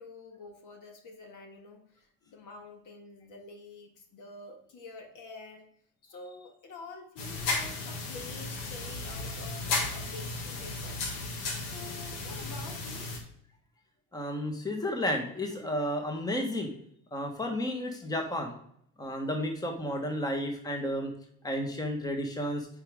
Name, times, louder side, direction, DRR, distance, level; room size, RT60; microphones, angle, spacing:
voice 1, 0.0-5.7 6.0-11.0 11.6-13.1, left 3 dB, 50° left, 4 dB, 1.8 m, -48 dB
sound 1, 7.2-13.2, left 3 dB, 80° left, 1.9 m, -35 dB
voice 2, 14.1-16.7 17.1-18.5 19.0-21.1 21.4-22.7, equal, 10° left, 3 dB, 1.4 m, -32 dB
8.8 x 5.1 x 3.5 m, 0.69 s
supercardioid pair, 100°, 39 cm